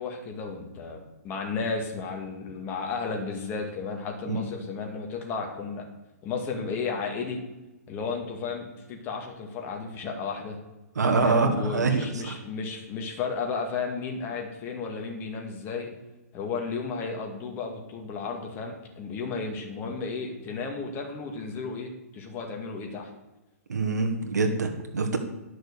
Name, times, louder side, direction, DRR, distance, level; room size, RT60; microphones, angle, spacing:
voice 1, 0.0-5.9 6.2-7.4 7.9-10.6 11.2-15.9 16.3-23.1, left 4 dB, 25° left, 2 dB, 2.2 m, -33 dB
voice 2, 11.0-12.4 23.7-25.2, right 4 dB, 85° right, 4 dB, 1.9 m, -25 dB
10.5 x 6.4 x 7.0 m, 1.0 s
hypercardioid pair, 145°, 9 cm